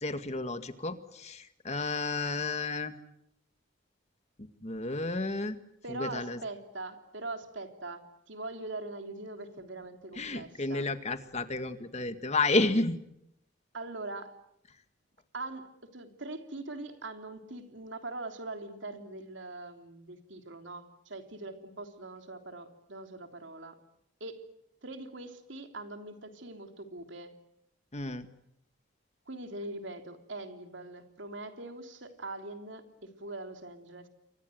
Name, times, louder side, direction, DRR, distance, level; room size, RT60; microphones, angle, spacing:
voice 1, 0.0-2.9 4.4-5.6 5.9-6.4 10.2-13.0 27.9-28.3, left 2 dB, 35° left, 9 dB, 1.9 m, -31 dB
voice 2, 5.8-10.9 13.7-14.4 15.3-23.8 24.2-24.5 24.8-27.4 29.3-34.1, right 2 dB, 65° right, 6 dB, 3.4 m, -42 dB
29.0 x 24.5 x 7.9 m, 0.76 s
head